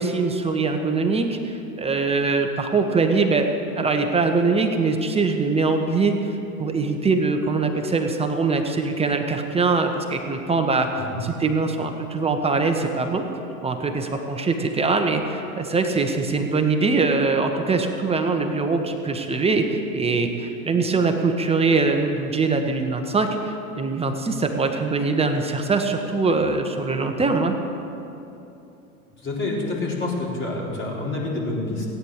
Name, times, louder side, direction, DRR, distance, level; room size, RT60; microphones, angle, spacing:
voice 1, 0.0-3.5 3.7-6.3 6.6-13.2 13.6-27.5, right 4 dB, 15° right, 4 dB, 1.3 m, -22 dB
voice 2, 29.2-31.9, left 2 dB, 25° left, -4 dB, 4.3 m, -27 dB
16.5 x 9.7 x 6.7 m, 2.8 s
hypercardioid pair, 90°, 43 cm